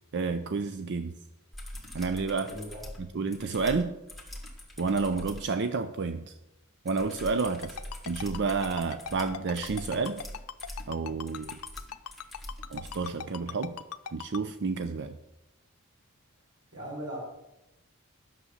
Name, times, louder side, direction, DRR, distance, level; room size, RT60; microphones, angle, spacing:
voice 1, 0.1-1.1 1.9-2.5 3.2-3.9 4.8-6.2 6.9-7.8 8.1-10.2 10.9-11.6 12.7-13.8 14.1-15.2, right 4 dB, 50° right, 9 dB, 0.5 m, -30 dB
sound 1, 1.5-5.5 6.9-13.1 14.8-14.9, left 1 dB, ahead, 2.0 m, -44 dB
voice 2, 2.3-2.8 16.7-17.2, right 1 dB, 90° right, -5 dB, 4.7 m, -39 dB
Ringtone, 7.6-14.4, left 7 dB, 80° left, 0.6 m, -39 dB
11.0 x 6.7 x 7.2 m, 0.92 s
head